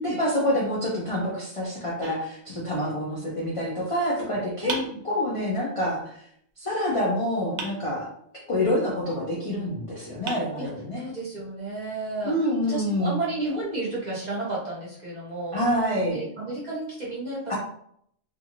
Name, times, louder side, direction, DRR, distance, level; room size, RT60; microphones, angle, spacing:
voice 1, 0.0-4.7 5.0-6.2 6.6-8.1 8.5-11.1 12.2-13.2 15.5-16.2 17.5-17.6, equal, 40° left, -5 dB, 0.5 m, -27 dB
sound 1, 2.0-3.0 4.7-5.7 7.6-8.5 9.7-9.8 10.3-11.2, right 3 dB, 65° right, 0.4 m, -38 dB
voice 2, 4.6-5.0 10.6-15.6 16.1-17.6, right 2 dB, 40° right, -6 dB, 0.9 m, -32 dB
2.5 x 2.5 x 2.9 m, 0.68 s
omnidirectional pair, 1.3 m